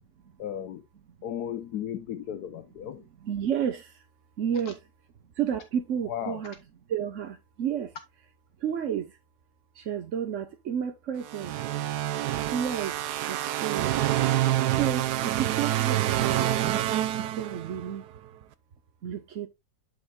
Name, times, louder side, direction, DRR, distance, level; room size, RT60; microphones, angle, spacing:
voice 1, 0.4-0.8 1.2-3.1 6.1-6.4, left 10 dB, 70° left, 1.3 m, -35 dB
voice 2, 3.2-4.0 4.4-4.8 5.4-6.5 6.9-7.9 8.6-9.2 9.7-11.6 12.4-13.9 14.6-16.7 17.2-18.0 19.0-19.5, right 8 dB, 50° right, 1.1 m, -31 dB
sound 1, 11.3-17.9, right 13 dB, 75° right, 1.1 m, -27 dB
11.0 x 5.5 x 2.4 m
omnidirectional pair, 1.9 m